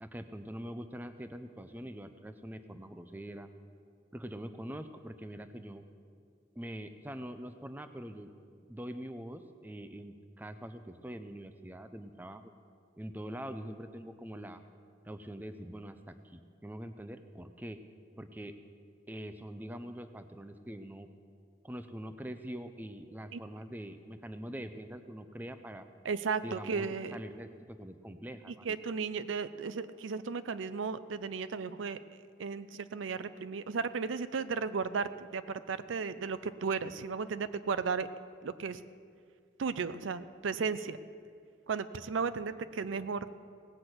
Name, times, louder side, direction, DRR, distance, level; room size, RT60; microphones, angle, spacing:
voice 1, 0.0-3.5 4.1-5.8 6.6-8.3 8.7-12.5 13.0-14.6 15.0-17.8 18.2-18.6 19.1-21.1 21.6-25.9 26.4-28.8, equal, 10° right, 9 dB, 0.5 m, -44 dB
voice 2, 26.0-27.2 28.6-32.0 32.4-38.1 38.4-38.8 39.6-41.0 41.7-43.3, right 5 dB, 85° right, 13 dB, 0.5 m, -35 dB
18.0 x 6.0 x 7.9 m, 2.2 s
head